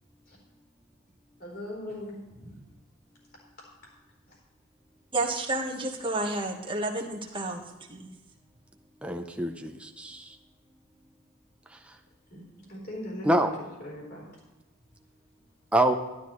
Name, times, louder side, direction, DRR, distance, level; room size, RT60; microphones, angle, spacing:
voice 1, 1.4-2.6 4.3-4.4 12.3-13.5 13.8-14.3, left 1 dB, 40° left, -3 dB, 3.9 m, -40 dB
voice 2, 5.1-8.1, right 2 dB, 20° right, 1 dB, 1.3 m, -31 dB
voice 3, 9.0-10.4 11.7-12.0 13.2-13.5 15.7-15.9, right 1 dB, 5° right, 4 dB, 0.6 m, -26 dB
12.5 x 11.5 x 3.1 m, 1.1 s
head